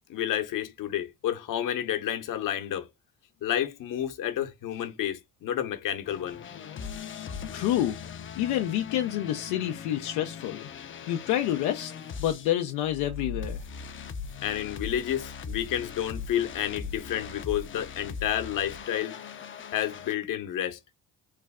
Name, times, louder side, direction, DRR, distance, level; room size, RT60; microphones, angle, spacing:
voice 1, 0.1-2.9 3.4-6.4 14.4-19.2 19.7-20.8, left 11 dB, 60° left, 0.9 m, -30 dB
sound 1, 6.0-12.5 12.8-20.1, left 6 dB, 35° left, 0.5 m, -40 dB
voice 2, 7.5-8.0 8.4-10.6 11.1-11.9 12.2-13.6, left 12 dB, 80° left, 0.5 m, -28 dB
3.2 x 2.2 x 3.5 m
supercardioid pair, 75°, 36 cm